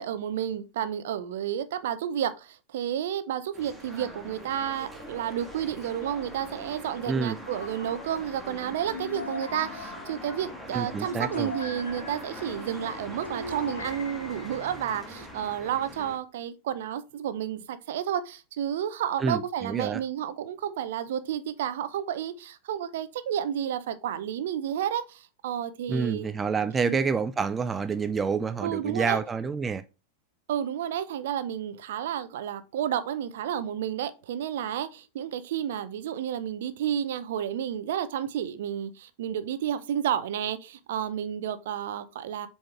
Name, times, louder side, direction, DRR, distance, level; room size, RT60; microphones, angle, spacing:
voice 1, 0.0-26.3 26.8-27.1 28.6-29.2 30.5-42.5, right 10 dB, 55° right, 0.7 m, -31 dB
sound 1, 3.5-16.2, equal, ahead, 1.6 m, -42 dB
voice 2, 7.1-7.4 10.7-11.5 19.2-20.0 25.9-29.8, right 5 dB, 15° right, 0.4 m, -28 dB
sound 2, 7.4-15.2, left 4 dB, 75° left, 1.3 m, -41 dB
7.5 x 4.4 x 3.5 m
figure-of-eight pair, 90°, 0 cm